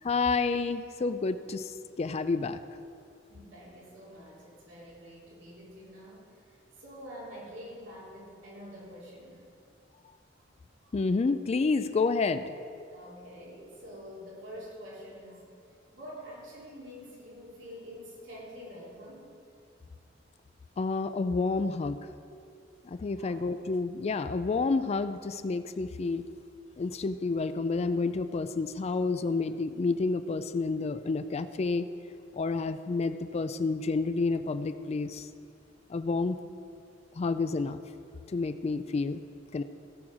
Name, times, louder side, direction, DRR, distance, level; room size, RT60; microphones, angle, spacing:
voice 1, 0.0-1.6 2.0-2.6 10.9-12.4 20.8-22.0 22.9-26.2 26.8-31.9 32.4-35.3 35.9-36.4 37.2-37.8 38.3-39.2 39.5-39.6, left 4 dB, 35° left, 11 dB, 0.3 m, -29 dB
voice 2, 3.3-9.5 10.8-11.0 12.9-15.5 15.9-19.3 23.1-23.4, equal, 75° right, -6 dB, 3.3 m, -47 dB
17.0 x 6.3 x 4.8 m, 2.4 s
head